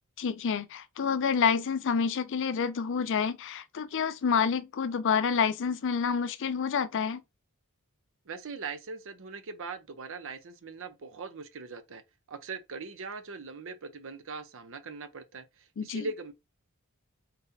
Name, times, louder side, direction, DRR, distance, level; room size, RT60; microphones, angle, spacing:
voice 1, 0.2-7.2 15.8-16.1, left 6 dB, 60° left, 0.5 m, -28 dB
voice 2, 8.3-12.0 12.3-16.3, right 4 dB, 65° right, 0.7 m, -41 dB
4.0 x 4.0 x 2.6 m
head